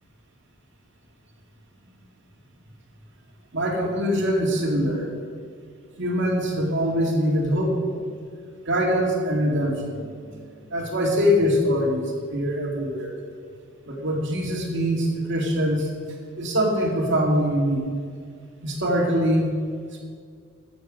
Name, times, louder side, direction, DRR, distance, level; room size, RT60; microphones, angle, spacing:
voice 1, 3.5-5.1 6.0-8.2 8.6-13.1 13.8-15.9 16.4-17.9 18.6-19.5, equal, 60° right, 0 dB, 2.3 m, -23 dB
14.0 x 7.3 x 6.3 m, 2.1 s
head